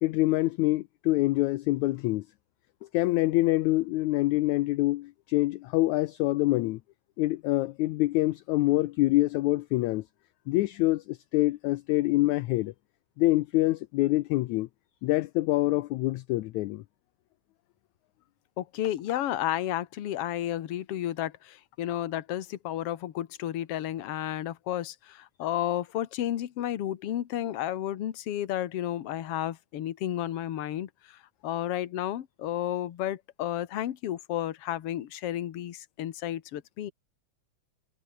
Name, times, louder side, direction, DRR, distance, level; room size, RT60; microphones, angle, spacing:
voice 1, 0.0-2.3 2.9-6.8 7.2-10.1 10.5-12.7 13.2-14.7 15.0-16.8, left 18 dB, 75° left, 1.8 m, -25 dB
voice 2, 18.6-36.9, left 12 dB, 55° left, 1.9 m, -32 dB
omnidirectional pair, 3.9 m